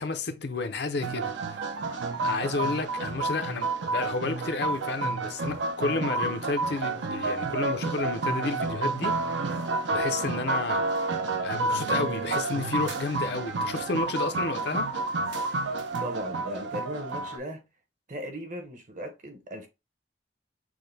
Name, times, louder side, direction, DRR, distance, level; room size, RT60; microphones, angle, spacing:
voice 1, 0.0-1.3 2.2-9.1 9.9-10.8 11.4-14.9, left 3 dB, 60° left, 0.6 m, -31 dB
sound 1, 1.0-17.4, right 3 dB, 75° right, 0.6 m, -30 dB
voice 2, 16.0-17.6 18.1-19.7, equal, 40° right, 0.9 m, -37 dB
6.3 x 2.1 x 3.3 m
head